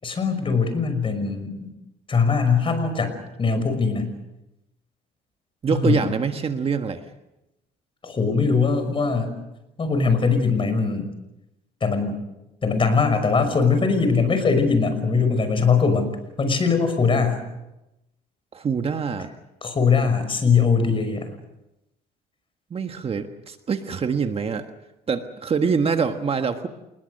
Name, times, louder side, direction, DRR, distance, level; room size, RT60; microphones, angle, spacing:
voice 1, 0.0-1.7 2.1-4.1 5.7-6.1 8.0-9.3 9.8-11.1 11.8-12.2 12.6-16.1 16.4-17.4 19.6-21.3, left 5 dB, 30° left, 8 dB, 5.9 m, -21 dB
voice 2, 5.6-7.0 18.5-19.3 22.7-24.7 25.1-26.7, right 5 dB, 35° right, 7 dB, 1.5 m, -25 dB
28.5 x 20.5 x 6.6 m, 0.92 s
cardioid pair, 110°, 17 cm